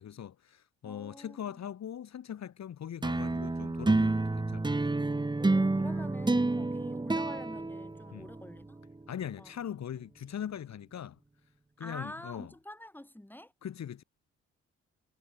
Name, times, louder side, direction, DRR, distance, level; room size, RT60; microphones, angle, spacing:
voice 1, 0.0-4.6 6.6-6.7 8.1-8.3 9.1-11.2 11.8-12.5 13.6-14.0, left 9 dB, 50° left, 5.2 m, -41 dB
voice 2, 0.8-1.7 5.4-8.8 9.4-9.5 9.9-10.0 11.8-13.5, left 1 dB, 5° left, 7.1 m, -46 dB
sound 1, 3.0-8.6, right 2 dB, 10° right, 1.6 m, -29 dB
figure-of-eight pair, 45°, 35 cm